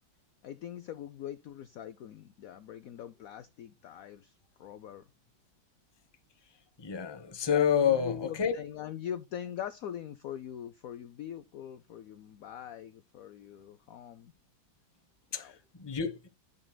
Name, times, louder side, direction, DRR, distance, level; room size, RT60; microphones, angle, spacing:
voice 1, 0.4-5.0 7.5-14.3 15.4-15.6, left 10 dB, 80° left, 0.7 m, -42 dB
voice 2, 6.8-8.5 15.3-16.3, left 8 dB, 25° left, 0.6 m, -29 dB
11.0 x 6.6 x 2.2 m
omnidirectional pair, 2.1 m